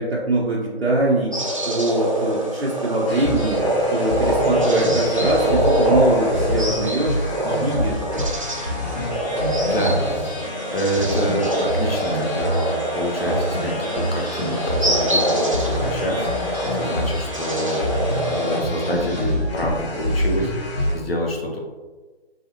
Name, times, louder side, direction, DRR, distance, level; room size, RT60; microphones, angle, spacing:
voice 1, 0.0-1.3 1.7-3.6 3.9-7.2 7.4-8.0, right 2 dB, 75° right, -5 dB, 0.8 m, -22 dB
sound 1, 1.3-18.6, right 1 dB, 30° right, 0.4 m, -24 dB
sound 2, 3.1-20.9, equal, 30° left, 1.2 m, -27 dB
voice 2, 9.7-10.4 10.7-17.9 18.3-21.6, equal, 65° left, -1 dB, 1.0 m, -27 dB
4.1 x 2.8 x 2.8 m, 1.3 s
figure-of-eight pair, 150°, 33 cm